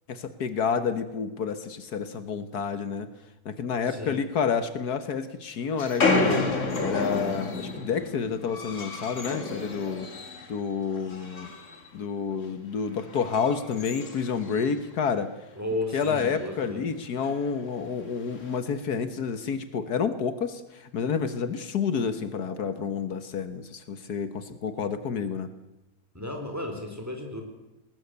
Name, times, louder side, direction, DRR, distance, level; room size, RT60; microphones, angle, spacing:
voice 1, 0.1-3.1 3.5-6.5 6.8-10.1 10.5-11.5 11.9-15.3 15.9-25.5, left 6 dB, 75° left, 12 dB, 1.8 m, -29 dB
voice 2, 3.9-4.2 15.6-16.8 26.1-27.4, left 1 dB, 10° right, 3 dB, 3.9 m, -34 dB
sound 1, 5.8-10.6 10.9-11.9 12.2-12.4 13.0-14.9 15.3-15.4 15.6-15.7 16.0-16.4 17.2-17.4 18.2-18.6, left 3 dB, 50° left, 2.4 m, -30 dB
21.0 x 19.0 x 8.1 m, 0.98 s
omnidirectional pair, 1.7 m